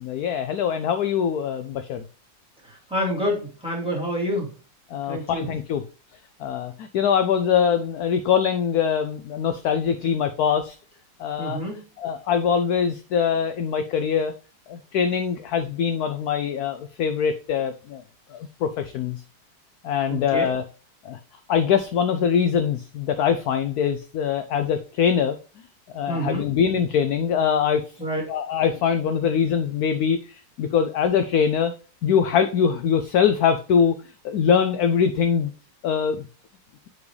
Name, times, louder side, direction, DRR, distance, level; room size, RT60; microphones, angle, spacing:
voice 1, 0.0-2.0 4.9-5.8 6.4-10.7 11.2-11.6 12.0-14.3 14.7-18.0 18.3-19.2 19.8-20.6 21.0-21.2 21.5-25.4 25.9-27.8 28.3-31.7 32.0-33.9 34.2-35.5 35.8-36.2, left 7 dB, 70° left, 9 dB, 0.9 m, -23 dB
voice 2, 2.9-4.5 5.1-5.5 11.4-11.8 20.1-20.5 26.1-26.4 28.0-28.2, equal, 5° right, -3 dB, 2.4 m, -27 dB
7.3 x 4.7 x 3.2 m, 0.35 s
omnidirectional pair, 2.0 m